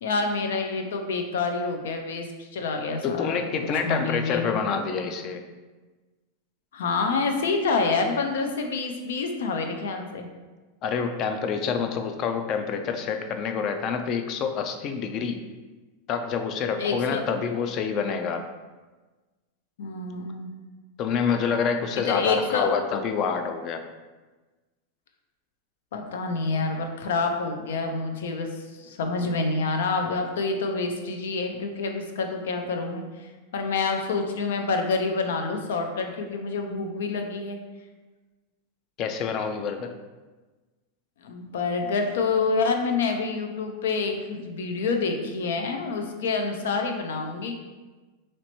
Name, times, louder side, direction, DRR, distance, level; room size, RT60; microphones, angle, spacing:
voice 1, 0.0-2.3 2.5-3.5 3.8-4.6 6.7-10.3 16.8-17.2 19.8-20.5 22.0-22.7 25.9-28.5 28.8-33.0 33.5-37.6 41.2-47.5, left 4 dB, 85° left, 4 dB, 0.6 m, -27 dB
voice 2, 3.0-5.4 10.8-15.4 16.1-18.5 21.0-23.8 39.0-39.9, left 6 dB, 40° left, 6 dB, 0.4 m, -27 dB
3.1 x 2.9 x 4.3 m, 1.3 s
supercardioid pair, 140°, 0 cm